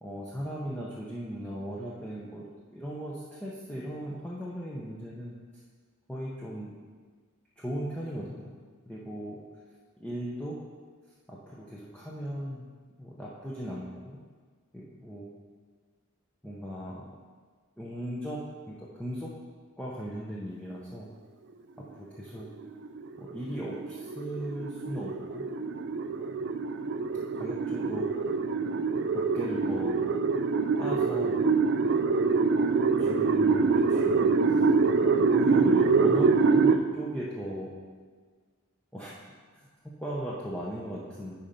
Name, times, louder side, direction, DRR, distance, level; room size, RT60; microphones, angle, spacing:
voice 1, 0.0-2.4 2.7-5.4 6.1-6.7 7.6-8.5 8.9-9.4 10.0-10.6 11.3-12.6 13.0-14.2 14.7-15.3 16.4-17.1 17.8-18.4 18.7-19.3 19.8-21.1 21.8-22.5 23.2-25.4 26.3-26.5 27.4-28.3 29.1-30.0 30.8-31.4 33.0-34.6 35.3-37.7 38.9-39.1 39.5-41.3, equal, 5° left, -6 dB, 0.7 m, -37 dB
sound 1, 22.4-36.8, right 4 dB, 50° right, 0.4 m, -25 dB
9.4 x 4.4 x 5.2 m, 1.5 s
head